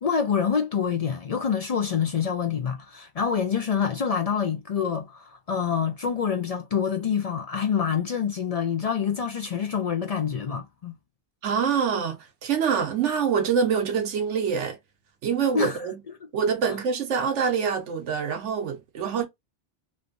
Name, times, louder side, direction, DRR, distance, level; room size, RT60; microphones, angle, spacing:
voice 1, 0.0-10.9 15.5-15.8, left 7 dB, 65° left, 0.3 m, -26 dB
voice 2, 11.4-14.8 15.2-16.0 16.3-19.3, right 6 dB, 90° right, 1.1 m, -25 dB
3.2 x 2.5 x 2.6 m
omnidirectional pair, 1.2 m